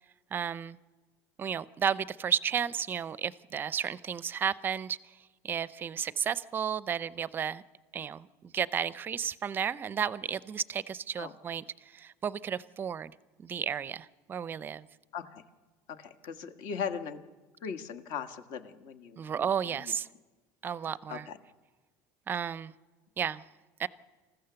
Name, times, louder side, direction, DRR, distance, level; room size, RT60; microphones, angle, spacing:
voice 1, 0.3-0.8 1.4-5.2 5.4-7.6 7.9-13.1 13.4-14.9 19.2-20.1 20.6-21.3 22.3-22.7 23.2-23.5 23.8-23.9, right 8 dB, 25° right, 0.5 m, -33 dB
voice 2, 15.9-17.2 17.6-19.9 21.1-21.4, left 7 dB, 60° left, 1.6 m, -39 dB
27.0 x 15.0 x 7.0 m
cardioid pair, 140°, 8 cm